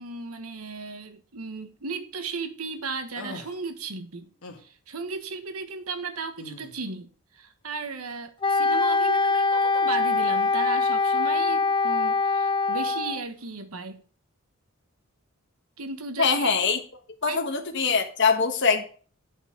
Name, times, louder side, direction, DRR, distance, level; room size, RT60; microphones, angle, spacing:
voice 1, 0.0-4.3 4.6-7.1 7.4-14.0 15.8-16.5 17.3-17.4, right 4 dB, 85° right, 1.4 m, -35 dB
sound 1, 3.2-3.6 4.4-4.6 6.4-6.8, left 2 dB, 80° left, 1.7 m, -40 dB
Wind instrument woodwind instrument, 8.4-13.2, left 4 dB, 20° left, 0.4 m, -23 dB
voice 2, 16.2-16.8 17.2-18.8, left 5 dB, 55° left, 1.3 m, -23 dB
9.1 x 5.6 x 5.9 m
head